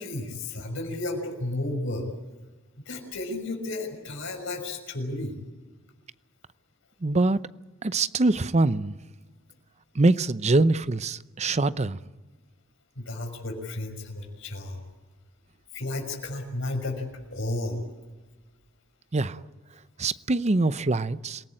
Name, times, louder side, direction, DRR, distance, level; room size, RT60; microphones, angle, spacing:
voice 1, 0.0-2.1 2.9-5.4 13.0-14.8 15.7-17.8, left 2 dB, 70° left, 6.2 m, -33 dB
voice 2, 7.0-7.4 7.8-9.0 10.0-12.0 19.1-19.4 20.0-21.4, right 2 dB, 35° right, 0.7 m, -23 dB
27.5 x 18.5 x 8.9 m
head